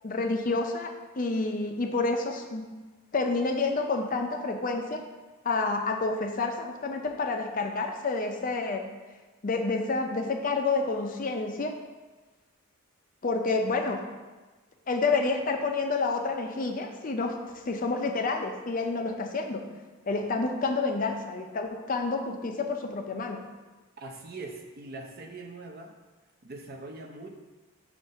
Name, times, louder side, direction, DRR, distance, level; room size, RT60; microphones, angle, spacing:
voice 1, 0.0-2.6 3.1-5.0 5.4-8.9 9.4-11.7 13.2-14.1 14.9-19.7 20.1-23.5, left 3 dB, 40° left, 4 dB, 0.5 m, -29 dB
voice 2, 24.0-25.9 26.4-27.3, right 2 dB, 45° right, 2 dB, 0.6 m, -42 dB
7.1 x 2.6 x 5.4 m, 1.3 s
head